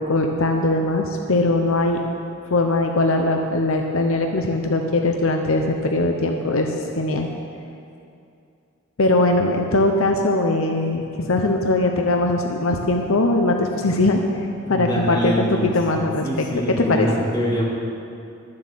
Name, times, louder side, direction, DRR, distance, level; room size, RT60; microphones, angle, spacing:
voice 1, 0.0-2.0 2.5-7.3 9.0-14.2 14.7-16.5 16.8-17.1, left 2 dB, 70° left, 3 dB, 0.8 m, -20 dB
voice 2, 14.7-15.7 16.2-17.6, equal, 20° left, -5 dB, 2.3 m, -24 dB
12.0 x 7.7 x 7.6 m, 2.5 s
head